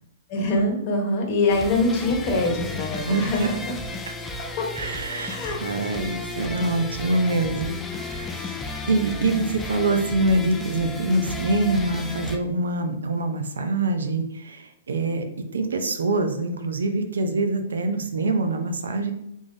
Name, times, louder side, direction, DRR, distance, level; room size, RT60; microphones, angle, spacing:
voice 1, 0.3-3.8 4.4-4.7 5.3-5.6, left 2 dB, 35° left, 1 dB, 1.0 m, -24 dB
sound 1, 1.5-12.4, left 2 dB, 10° left, 0.3 m, -34 dB
voice 2, 3.1-3.5 4.8-8.6 8.8-19.1, right 2 dB, 90° right, 6 dB, 0.6 m, -25 dB
3.5 x 3.4 x 2.6 m, 0.80 s
hypercardioid pair, 150°, 0 cm